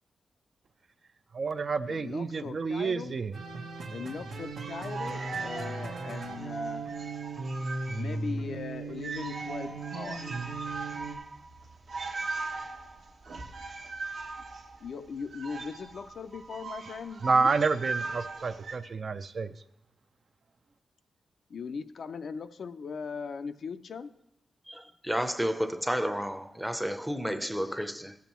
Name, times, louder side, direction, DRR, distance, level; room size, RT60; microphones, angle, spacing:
voice 1, 1.3-3.3 17.2-19.5, right 4 dB, 50° right, 10 dB, 0.4 m, -29 dB
voice 2, 1.9-3.2 3.9-6.9 7.9-10.2 14.8-17.5 21.5-24.1, left 5 dB, 70° left, 10 dB, 0.4 m, -39 dB
sound 1, 3.3-11.1, right 3 dB, 85° right, 1.0 m, -37 dB
sound 2, 4.4-8.3 8.6-8.7 9.0-18.8, right 3 dB, 70° right, 1.0 m, -39 dB
voice 3, 24.7-28.2, equal, 5° right, 9 dB, 0.6 m, -31 dB
15.5 x 7.0 x 3.0 m, 0.83 s
wide cardioid pair, 100°, 0 cm